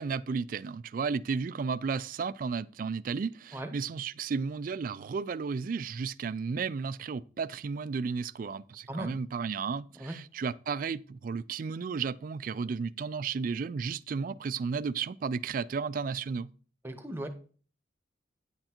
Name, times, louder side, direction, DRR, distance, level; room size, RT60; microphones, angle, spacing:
voice 1, 0.0-16.5, right 5 dB, 45° right, 0.3 m, -33 dB
voice 2, 16.8-17.3, right 1 dB, 10° right, 1.0 m, -37 dB
9.8 x 7.7 x 3.0 m
head